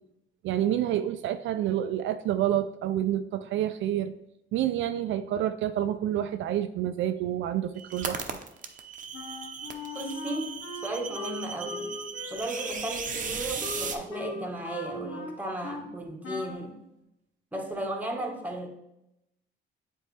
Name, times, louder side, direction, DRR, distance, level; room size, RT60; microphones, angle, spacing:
voice 1, 0.4-4.1 4.5-8.4, right 11 dB, 75° right, 10 dB, 0.4 m, -28 dB
sound 1, 7.8-14.0, right 6 dB, 40° right, 0.8 m, -37 dB
Wind instrument woodwind instrument, 9.1-15.9 16.2-16.7, left 3 dB, 85° left, 1.9 m, -40 dB
voice 2, 9.9-10.5 10.8-11.9 12.3-16.7 17.5-18.7, right 1 dB, 10° right, 1 dB, 1.4 m, -35 dB
7.5 x 4.4 x 3.3 m, 0.86 s
cardioid pair, 90°, 20 cm